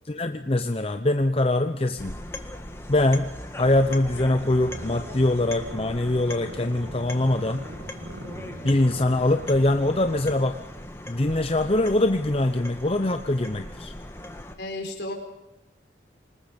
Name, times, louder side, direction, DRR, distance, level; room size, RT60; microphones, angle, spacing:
voice 1, 0.0-2.2 2.9-3.3 3.6-7.6 8.6-10.6 11.1-13.9, left 1 dB, 30° left, 7 dB, 0.8 m, -23 dB
sound 1, 2.0-14.6, left 1 dB, 15° left, 1.7 m, -39 dB
sound 2, 4.3-10.3, right 1 dB, 80° right, 2.9 m, -42 dB
voice 2, 14.5-15.1, left 1 dB, 60° left, 3 dB, 4.5 m, -33 dB
27.5 x 20.0 x 5.3 m, 0.97 s
head